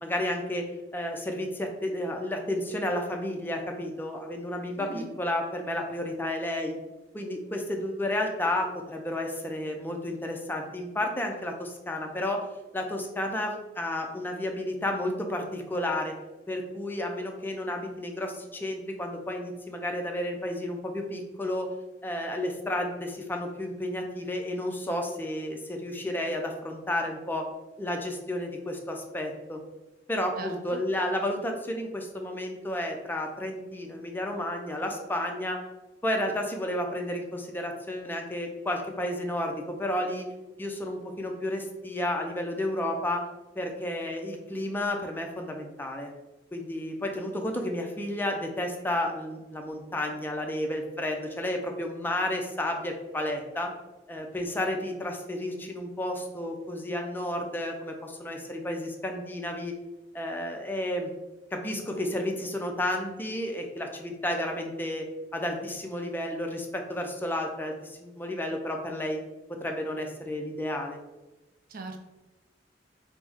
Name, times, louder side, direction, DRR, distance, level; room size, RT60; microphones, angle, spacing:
voice 1, 0.0-6.7 7.1-12.4 12.7-16.2 16.5-21.7 22.0-27.5 27.8-29.6 30.1-35.6 36.0-40.3 40.6-43.3 43.6-46.1 46.5-53.7 54.1-59.8 60.1-61.1 61.5-69.2 69.5-71.0, left 1 dB, 10° left, 2 dB, 0.4 m, -32 dB
voice 2, 4.8-5.1 30.4-30.8 71.7-72.0, right 3 dB, 50° right, 4 dB, 0.4 m, -39 dB
4.8 x 2.0 x 3.4 m, 1.1 s
head